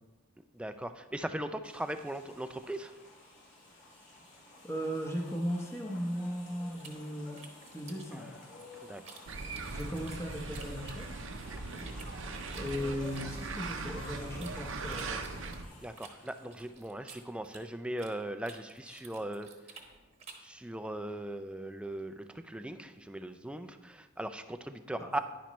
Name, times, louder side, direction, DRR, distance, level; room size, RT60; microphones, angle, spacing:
voice 1, 0.5-2.9 8.9-9.2 15.8-19.5 20.4-25.2, right 1 dB, 5° right, 9 dB, 0.3 m, -39 dB
sound 1, 1.6-16.8, left 2 dB, 55° left, 3.1 m, -52 dB
voice 2, 4.6-7.4 7.7-8.4 9.7-11.1 12.5-15.4 18.8-19.1 25.0-25.2, equal, 10° left, 0 dB, 0.9 m, -37 dB
sound 2, 6.8-9.2 9.5-11.4 11.8-14.5 14.9-18.2 18.4-20.5, right 5 dB, 30° right, 1.1 m, -52 dB
sound 3, 9.3-15.6, right 3 dB, 60° right, 0.7 m, -40 dB
10.0 x 10.0 x 3.1 m, 1.2 s
head